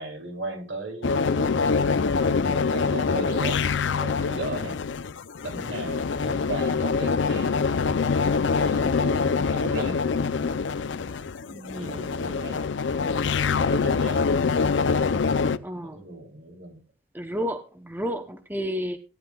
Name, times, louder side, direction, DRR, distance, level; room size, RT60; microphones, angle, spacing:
voice 1, 0.0-1.9 2.3-4.8 5.4-7.6 8.5-10.0 11.7-12.7 13.7-14.2 15.7-16.8, right 2 dB, 80° right, 3 dB, 2.6 m, -36 dB
sound 1, 1.0-15.6, left 5 dB, 80° left, 0.5 m, -25 dB
voice 2, 11.5-12.3 15.6-16.0 17.1-19.0, equal, 10° right, 7 dB, 0.7 m, -32 dB
15.5 x 10.5 x 2.3 m, 0.31 s
head